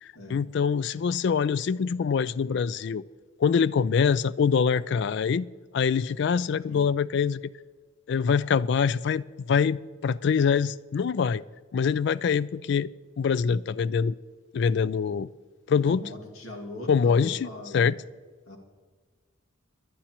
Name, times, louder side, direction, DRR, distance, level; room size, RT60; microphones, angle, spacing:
voice 1, 0.0-3.0 3.4-5.5 5.7-7.4 8.1-11.4 11.7-12.9 13.2-14.1 14.5-15.3 15.7-16.0 16.9-18.0, left 6 dB, 55° left, 0.3 m, -24 dB
voice 2, 15.9-17.9 18.5-18.6, left 1 dB, 85° left, 2.2 m, -41 dB
21.5 x 11.5 x 3.0 m
head